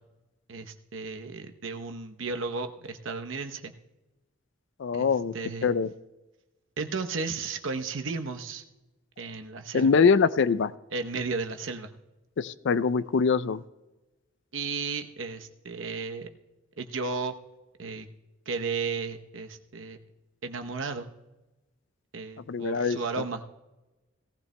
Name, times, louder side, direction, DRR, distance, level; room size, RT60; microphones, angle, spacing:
voice 1, 0.5-3.7 4.9-5.1 5.3-5.7 6.8-8.6 9.2-9.9 10.9-11.9 14.5-16.3 16.8-17.4 17.8-18.1 18.5-20.0 20.4-21.1 22.1-23.4, right 4 dB, 70° right, 6 dB, 0.8 m, -34 dB
voice 2, 4.8-5.3 5.6-5.9 9.7-10.7 12.4-13.6 22.5-23.2, left 5 dB, 60° left, 16 dB, 0.4 m, -23 dB
18.0 x 15.0 x 2.2 m, 1.1 s
head